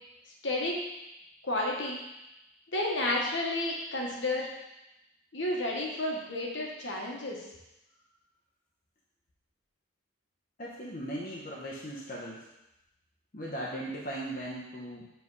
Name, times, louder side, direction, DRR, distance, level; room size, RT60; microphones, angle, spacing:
voice 1, 0.4-0.9 1.4-2.0 2.7-4.5 5.3-7.4, left 1 dB, 60° left, -1 dB, 1.2 m, -31 dB
voice 2, 10.6-12.4 13.3-15.1, right 1 dB, 40° left, -6 dB, 0.9 m, -38 dB
7.6 x 3.4 x 4.7 m, 0.92 s
head